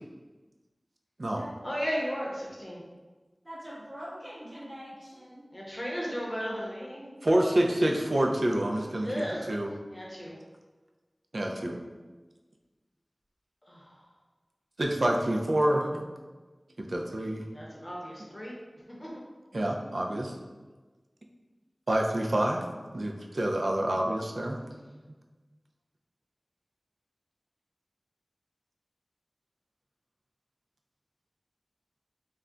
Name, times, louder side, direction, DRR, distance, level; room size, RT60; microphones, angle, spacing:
voice 1, 1.6-2.8 5.5-7.0 9.0-9.5 9.9-10.4 13.7-14.0 17.5-18.6 19.0-19.1, equal, 35° left, -5 dB, 0.7 m, -35 dB
voice 2, 3.4-5.4, equal, 35° right, -10 dB, 0.7 m, -44 dB
voice 3, 7.2-9.7 11.3-11.8 14.8-16.0 16.8-17.4 19.5-20.3 21.9-22.6 22.9-24.6, right 1 dB, 70° right, 1 dB, 0.3 m, -27 dB
2.3 x 2.1 x 3.7 m, 1.3 s
wide cardioid pair, 45°, 0 cm